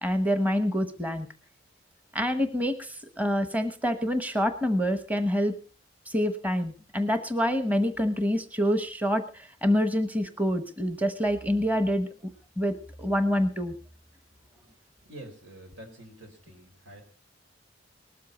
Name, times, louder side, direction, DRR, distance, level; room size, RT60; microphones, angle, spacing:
voice 1, 0.0-1.3 2.1-5.5 6.1-12.1 12.6-13.7, equal, 10° right, 9 dB, 1.1 m, -26 dB
voice 2, 15.0-17.0, right 1 dB, 85° right, 5 dB, 4.8 m, -47 dB
19.5 x 13.0 x 4.2 m, 0.37 s
head